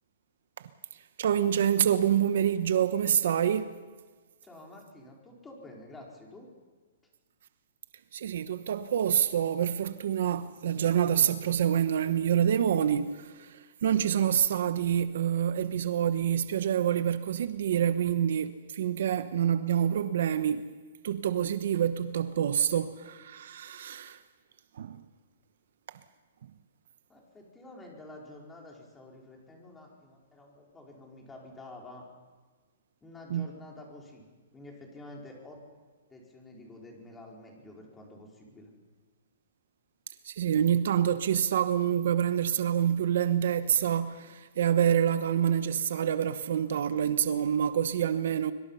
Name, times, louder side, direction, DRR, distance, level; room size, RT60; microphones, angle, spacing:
voice 1, 1.2-3.7 8.1-20.7 21.0-24.2 24.7-25.0 25.9-26.0 33.3-33.5 40.2-48.5, right 9 dB, 65° right, 1.0 m, -27 dB
voice 2, 4.4-6.5 27.1-32.0 33.0-34.3 34.5-35.6 36.1-38.7, left 2 dB, 10° left, 4.6 m, -49 dB
25.0 x 23.5 x 5.7 m
hypercardioid pair, 160°, 0 cm